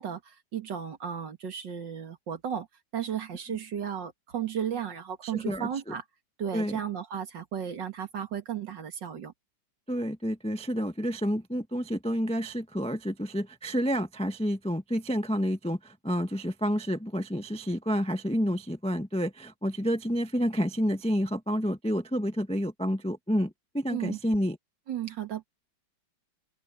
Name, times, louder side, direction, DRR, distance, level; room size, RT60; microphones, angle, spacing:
voice 1, 0.0-2.7 2.9-6.0 6.4-9.3 23.9-24.2 24.9-25.5, right 8 dB, 60° right, 2.4 m, -34 dB
voice 2, 5.2-5.9 6.5-6.8 9.9-24.6, equal, 5° left, 0.5 m, -29 dB
open air
omnidirectional pair, 2.2 m